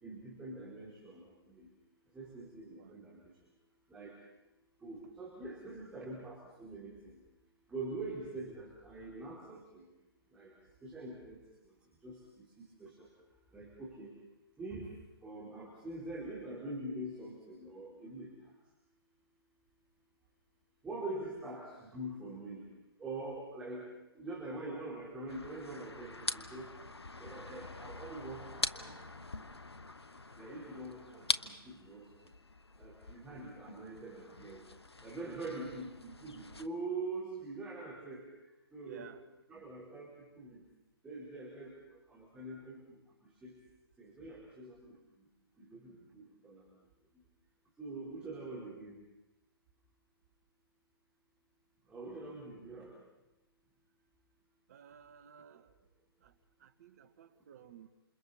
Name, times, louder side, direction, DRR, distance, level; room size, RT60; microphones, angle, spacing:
voice 1, 0.0-1.7 2.1-3.2 3.9-4.2 4.8-7.2 7.7-9.9 10.3-10.5 10.8-11.4 12.0-12.5 12.8-13.1 13.5-14.1 14.6-14.9 15.2-18.3 20.8-22.7 23.0-23.9 24.1-26.7 27.1-29.2 30.4-32.0 32.8-34.6 35.0-38.2 38.7-39.1 39.5-40.6 41.0-41.7 42.1-42.8 43.4-43.5 44.0-45.0 45.6-46.6 47.8-49.0 51.9-52.9, right 2 dB, 10° right, -5 dB, 4.5 m, -44 dB
sound 1, 25.3-36.7, left 3 dB, 85° left, 1.0 m, -43 dB
voice 2, 38.8-39.2 54.7-55.8 56.2-57.9, right 9 dB, 40° right, 11 dB, 1.6 m, -55 dB
28.5 x 27.5 x 4.4 m, 0.96 s
figure-of-eight pair, 135°, 13 cm